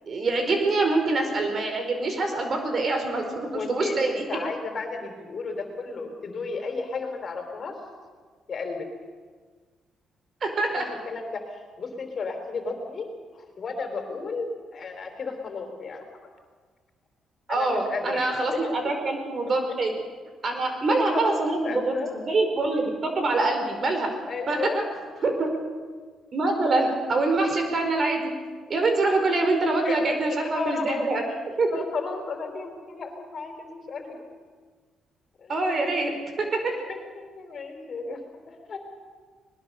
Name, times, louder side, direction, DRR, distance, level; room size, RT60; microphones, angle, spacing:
voice 1, 0.1-4.2 10.4-10.8 17.5-19.9 20.4-21.9 22.3-24.1 24.5-24.6 25.2-25.5 26.3-28.3 28.7-31.2 31.6-31.7 35.5-36.1 36.4-36.7, right 2 dB, 45° right, 5 dB, 4.7 m, -25 dB
voice 2, 3.5-7.8 8.5-8.9 10.7-13.1 13.3-16.1 17.5-18.3 18.6-19.5 20.9-22.2 24.3-25.0 29.8-31.1 31.7-34.2 35.4-35.6 36.0-36.2 36.9-38.8, left 4 dB, 50° left, 5 dB, 4.0 m, -34 dB
21.0 x 20.5 x 6.8 m, 1.5 s
cardioid pair, 90°, 0 cm